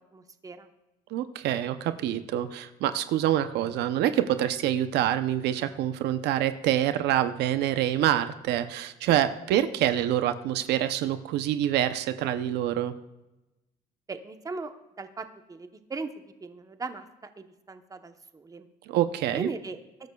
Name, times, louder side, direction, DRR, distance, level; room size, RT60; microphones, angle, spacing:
voice 1, 0.1-0.7 14.1-16.1 16.4-18.7 19.3-19.8, right 4 dB, 20° right, 8 dB, 0.9 m, -38 dB
voice 2, 1.1-12.9 18.9-19.5, right 11 dB, 80° right, 11 dB, 0.7 m, -26 dB
21.0 x 12.0 x 2.3 m, 0.98 s
cardioid pair, 110°, 17 cm